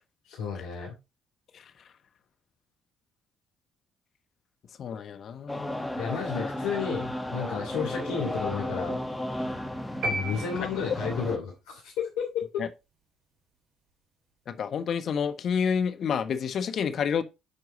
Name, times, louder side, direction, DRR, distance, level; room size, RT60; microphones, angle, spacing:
voice 1, 0.3-0.9 6.0-9.0 10.0-12.3, left 6 dB, 80° left, 3.1 m, -32 dB
voice 2, 4.8-5.9 6.3-6.5 7.7-7.9 12.6-12.7 14.5-17.2, left 7 dB, 55° left, 1.2 m, -29 dB
sound 1, 5.5-11.4, left 1 dB, 10° left, 1.5 m, -34 dB
sound 2, 10.0-11.3, right 1 dB, 45° right, 3.8 m, -33 dB
10.0 x 4.7 x 3.9 m
hypercardioid pair, 55°, 0 cm